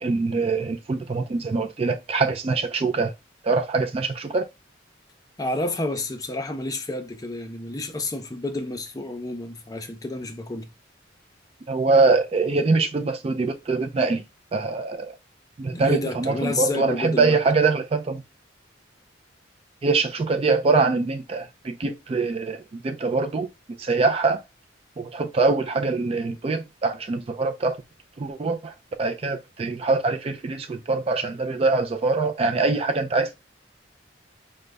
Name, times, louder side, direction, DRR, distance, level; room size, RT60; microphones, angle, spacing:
voice 1, 0.0-3.1 3.4-4.5 11.7-14.2 14.5-15.2 15.6-18.2 19.8-23.5 23.8-24.4 25.0-27.8 28.2-33.3, right 3 dB, 30° right, 0.3 m, -23 dB
voice 2, 5.4-10.7 15.7-17.4, left 2 dB, 20° left, 0.5 m, -30 dB
5.1 x 2.2 x 3.3 m
head